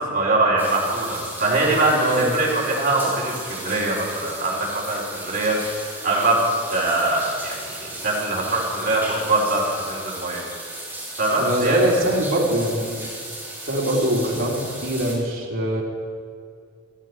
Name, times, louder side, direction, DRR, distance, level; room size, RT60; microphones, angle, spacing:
voice 1, 0.0-6.4 6.7-10.4 11.2-11.8, right 2 dB, 45° right, -4 dB, 4.0 m, -23 dB
sound 1, 0.6-15.1, right 1 dB, 10° right, 4.9 m, -36 dB
voice 2, 1.9-2.3 11.4-13.1 13.6-15.8, right 1 dB, 65° right, -3 dB, 2.9 m, -22 dB
16.5 x 14.0 x 4.7 m, 2.3 s
head